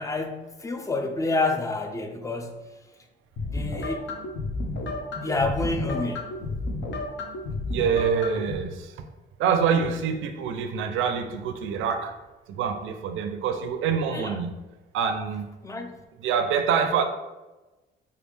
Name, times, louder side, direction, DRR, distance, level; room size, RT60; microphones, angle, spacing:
voice 1, 0.0-2.5 3.4-4.1 5.1-6.3 14.1-14.4 15.6-16.0, left 2 dB, 15° left, 0.4 m, -28 dB
sound 1, 3.4-8.5, left 2 dB, 65° left, 0.6 m, -32 dB
voice 2, 7.7-8.9 9.4-12.2 12.5-14.5 14.9-15.5 16.2-17.0, right 6 dB, 80° right, 0.4 m, -25 dB
3.3 x 2.3 x 3.2 m
cardioid pair, 90°, 20 cm